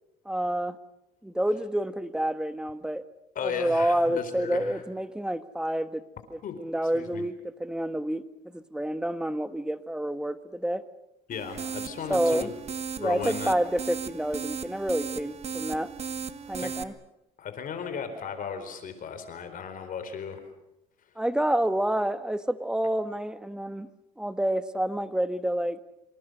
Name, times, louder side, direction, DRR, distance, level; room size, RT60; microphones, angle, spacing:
voice 1, 0.2-0.8 1.2-3.0 3.4-6.0 6.3-10.8 12.1-12.5 13.0-15.9 16.5-16.9 21.2-23.9 24.2-25.8, right 1 dB, 5° right, 11 dB, 1.4 m, -28 dB
voice 2, 3.3-4.8 6.4-6.6 6.9-7.3 11.3-12.5 13.0-13.6 16.6-16.7 17.4-20.4, left 7 dB, 55° left, 8 dB, 4.5 m, -35 dB
sound 1, 11.3-16.8, right 6 dB, 40° right, 1.4 m, -36 dB
26.5 x 26.0 x 6.8 m, 0.90 s
cardioid pair, 110°, 17 cm